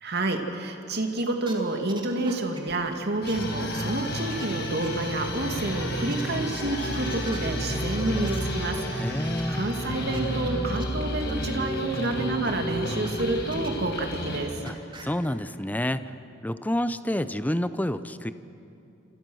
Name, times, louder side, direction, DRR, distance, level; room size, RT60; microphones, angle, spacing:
voice 1, 0.0-14.5, right 2 dB, 60° right, 4 dB, 2.5 m, -29 dB
sound 1, 1.3-1.5 1.9-2.9 3.3-3.4 3.7-4.5 4.8-4.9 5.3-5.4 6.1-6.2 6.5-8.4 9.4-9.5 9.7-9.8 10.1-10.2 10.5-10.6 10.8-10.9 11.3-11.4 12.0-12.1 12.4-13.2 13.5-13.9 14.2-14.4 14.7-15.0, right 3 dB, 25° right, 3.1 m, -42 dB
sound 2, 3.2-14.4, left 1 dB, 60° left, 5.4 m, -34 dB
sound 3, 5.3-13.5, right 1 dB, 5° right, 5.1 m, -33 dB
voice 2, 8.9-9.6 14.6-14.8 15.0-16.1 16.4-18.3, left 1 dB, 10° left, 12 dB, 0.7 m, -28 dB
27.5 x 27.5 x 6.4 m, 2.8 s
head